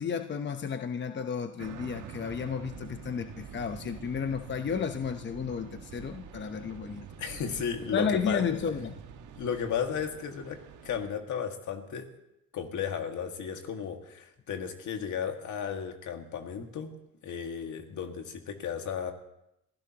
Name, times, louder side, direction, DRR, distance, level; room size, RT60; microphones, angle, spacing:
voice 1, 0.0-7.0 7.9-9.0, left 6 dB, 40° left, 7 dB, 0.9 m, -32 dB
sound 1, 1.6-11.1, right 7 dB, 80° right, 1.5 m, -46 dB
voice 2, 7.2-8.5 9.3-12.1 12.5-16.9 17.2-19.1, left 7 dB, 75° left, 4 dB, 2.0 m, -34 dB
27.0 x 16.0 x 3.0 m, 0.84 s
cardioid pair, 90°, 30 cm